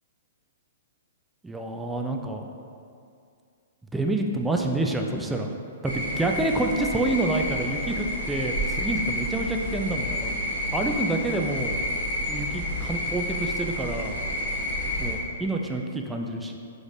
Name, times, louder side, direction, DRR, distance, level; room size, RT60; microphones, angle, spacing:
voice 1, 1.4-2.4 3.9-5.5 5.8-10.4 10.7-11.8 12.3-14.2 15.0-16.6, right 2 dB, 5° right, 2 dB, 0.3 m, -28 dB
sound 1, 5.8-15.1, left 1 dB, 70° right, 1.2 m, -30 dB
4.8 x 3.1 x 2.6 m, 2.4 s
figure-of-eight pair, 115°, 0 cm